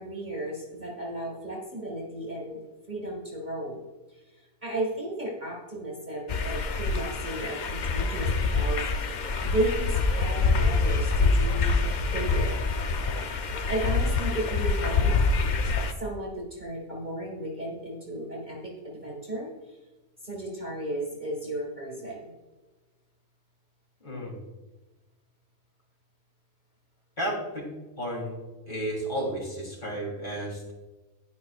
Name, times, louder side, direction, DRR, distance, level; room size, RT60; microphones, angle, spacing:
voice 1, 0.0-2.6 2.9-3.8 4.1-4.2 4.6-8.9 9.4-12.5 13.7-15.1 16.0-19.8 20.2-22.3, right 1 dB, 35° right, -2 dB, 1.7 m, -34 dB
sound 1, 6.3-15.9, left 3 dB, 55° left, 0.5 m, -26 dB
voice 2, 24.0-24.4 27.2-27.7 28.0-28.4 28.7-30.7, right 1 dB, 35° left, -4 dB, 3.3 m, -32 dB
10.5 x 9.6 x 2.4 m, 1.1 s
omnidirectional pair, 1.4 m